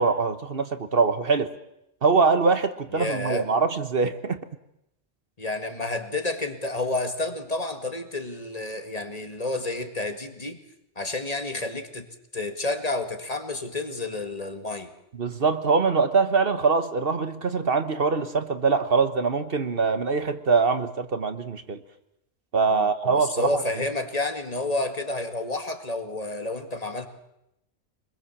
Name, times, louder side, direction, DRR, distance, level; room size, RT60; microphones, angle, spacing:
voice 1, 0.0-1.5 2.0-4.4 15.1-21.8 22.5-23.6, right 4 dB, 55° right, 10 dB, 1.4 m, -23 dB
voice 2, 2.9-3.5 5.4-10.6 11.0-12.1 12.3-14.9 22.7-27.1, left 2 dB, 35° left, 6 dB, 2.1 m, -30 dB
25.0 x 22.0 x 7.3 m, 0.84 s
omnidirectional pair, 1.1 m